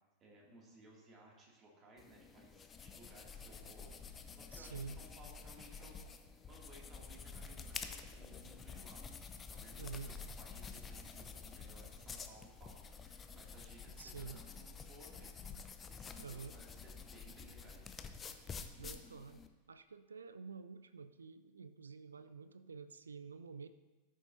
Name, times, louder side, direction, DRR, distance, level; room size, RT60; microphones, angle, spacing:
voice 1, 0.2-18.0, right 1 dB, 25° right, -2 dB, 2.5 m, -60 dB
sound 1, 2.0-19.5, left 5 dB, 20° left, 0.6 m, -49 dB
voice 2, 4.5-5.0 9.8-10.1 14.0-14.4 16.2-16.6 18.8-23.7, right 5 dB, 75° right, 12 dB, 0.3 m, -49 dB
14.0 x 7.3 x 2.7 m, 1.2 s
figure-of-eight pair, 90°, 0 cm